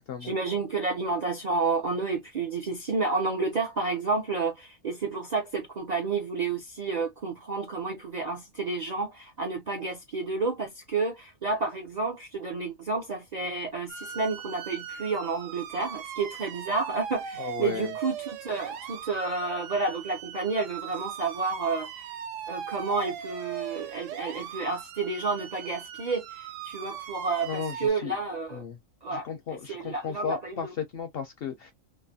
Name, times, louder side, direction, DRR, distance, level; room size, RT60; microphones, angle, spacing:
voice 1, 0.2-22.1 22.5-28.6 29.0-30.7, right 4 dB, 55° right, 0.4 m, -30 dB
sound 1, 13.9-27.9, right 9 dB, 75° right, 0.9 m, -39 dB
voice 2, 17.4-17.9 27.5-27.7 28.0-28.1 28.5-28.8 29.1-31.7, left 7 dB, 65° left, 0.6 m, -34 dB
3.1 x 2.1 x 2.6 m
omnidirectional pair, 1.4 m